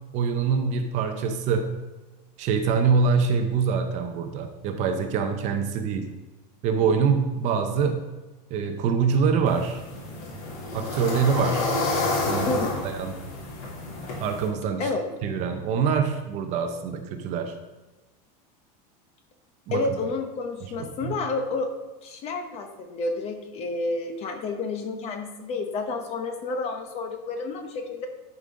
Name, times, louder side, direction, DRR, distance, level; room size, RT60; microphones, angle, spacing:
voice 1, 0.1-1.8 2.4-6.1 6.6-8.0 8.5-9.8 10.7-11.7 12.3-13.2 14.2-14.9 15.2-17.5 19.7-19.8 20.8-21.2, right 5 dB, 35° right, 6 dB, 0.7 m, -25 dB
sound 1, 9.5-14.5, left 2 dB, 65° left, 3.1 m, -29 dB
voice 2, 12.4-12.9 14.8-15.0 19.7-21.7 22.0-28.1, left 3 dB, 30° left, 5 dB, 0.9 m, -30 dB
11.5 x 5.2 x 3.7 m, 1.2 s
supercardioid pair, 170°, 20 cm